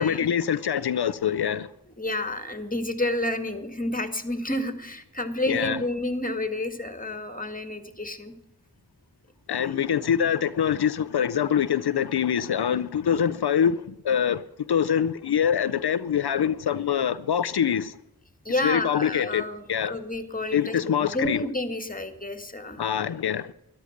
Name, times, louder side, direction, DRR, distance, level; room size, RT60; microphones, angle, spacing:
voice 1, 0.0-1.7 5.5-5.8 9.5-18.0 18.6-19.4 19.7-19.9 20.5-21.4 22.8-23.5, left 8 dB, 80° left, 0.5 m, -24 dB
voice 2, 2.0-8.3 9.6-10.0 18.5-22.8, left 1 dB, 20° left, 1.9 m, -30 dB
13.5 x 11.5 x 6.5 m
wide cardioid pair, 45°, 38 cm